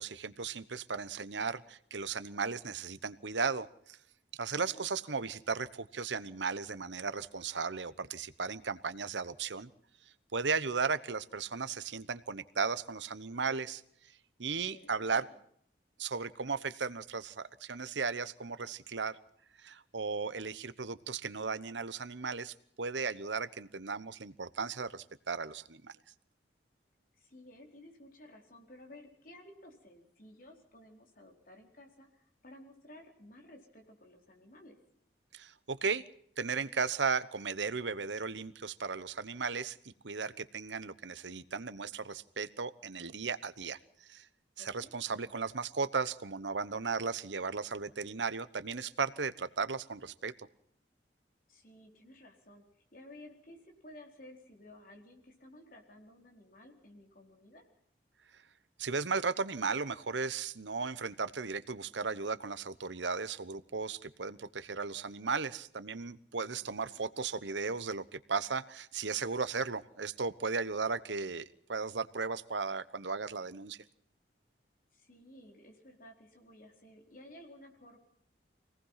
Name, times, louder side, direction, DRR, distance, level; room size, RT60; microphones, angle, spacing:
voice 1, 0.0-4.0 4.4-9.7 10.3-13.8 14.4-15.2 16.0-19.2 19.6-25.9 35.3-36.0 36.4-43.8 44.1-44.3 44.6-50.3 58.8-73.8, right 5 dB, 90° right, 15 dB, 1.0 m, -36 dB
voice 2, 4.5-4.9 14.7-15.4 27.2-34.8 44.6-44.9 51.5-57.7 66.3-67.0 74.9-78.0, left 1 dB, 50° left, 2 dB, 4.4 m, -55 dB
25.0 x 18.5 x 5.8 m, 0.66 s
head